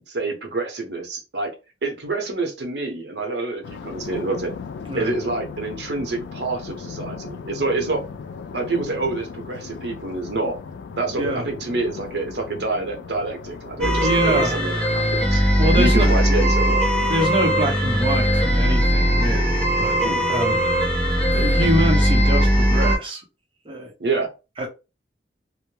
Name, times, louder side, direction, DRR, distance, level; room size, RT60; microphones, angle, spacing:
voice 1, 0.0-1.5 1.8-4.5 4.9-8.0 8.5-10.6 11.0-15.0 15.3-15.4 15.7-16.8 20.0-20.3 24.0-24.3, right 3 dB, 70° right, 0.7 m, -27 dB
sound 1, 3.6-14.4, left 5 dB, 80° left, 0.3 m, -37 dB
sound 2, 13.8-23.0, equal, 5° left, 0.8 m, -19 dB
voice 2, 14.0-14.6 15.6-16.3 17.1-20.0 20.3-20.8 21.3-23.2 23.6-23.9 24.6-24.7, right 1 dB, 30° right, 0.7 m, -25 dB
2.2 x 2.1 x 3.0 m
head